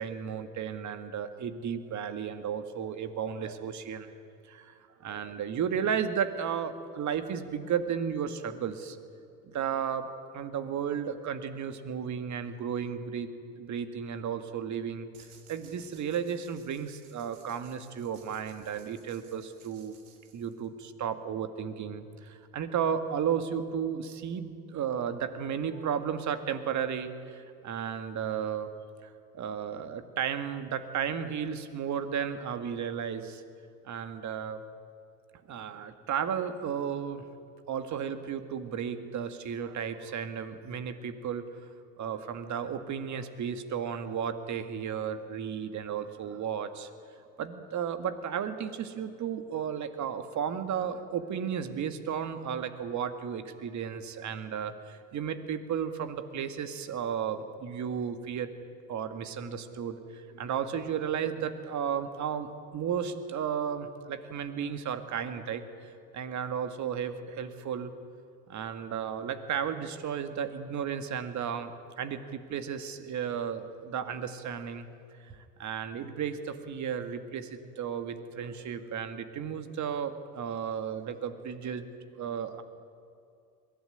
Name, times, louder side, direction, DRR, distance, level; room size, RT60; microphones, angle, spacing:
voice 1, 0.0-4.1 4.5-9.0 9.5-10.1 10.3-13.3 13.6-15.1 15.5-20.0 20.3-28.7 29.0-33.4 33.8-34.6 35.5-37.2 37.7-41.4 42.0-46.9 47.4-58.5 58.9-65.6 66.1-67.9 68.5-71.7 72.0-74.9 75.2-81.9 82.2-82.6, right 8 dB, 40° right, 10 dB, 2.0 m, -34 dB
sound 1, 15.1-20.8, right 7 dB, 75° right, 3.5 m, -59 dB
22.0 x 16.0 x 9.9 m, 2.5 s
hypercardioid pair, 85°, 43 cm